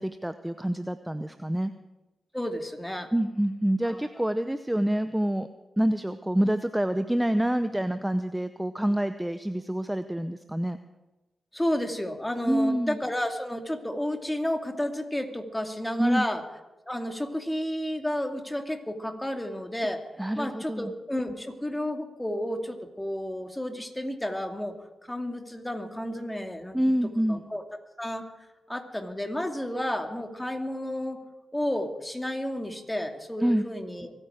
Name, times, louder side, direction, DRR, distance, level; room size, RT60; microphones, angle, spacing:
voice 1, 0.0-1.7 3.1-5.5 5.8-10.8 12.5-13.0 16.0-16.3 20.2-20.9 26.7-27.4 33.4-33.7, right 1 dB, 10° right, 10 dB, 0.7 m, -27 dB
voice 2, 2.3-3.1 3.8-4.0 11.5-16.4 16.9-20.0 20.4-24.7 25.0-26.8 27.3-27.6 28.0-28.2 28.7-31.2 31.5-34.1, left 1 dB, 10° left, 5 dB, 2.4 m, -31 dB
24.5 x 9.1 x 5.0 m, 1.1 s
cardioid pair, 50°, 0 cm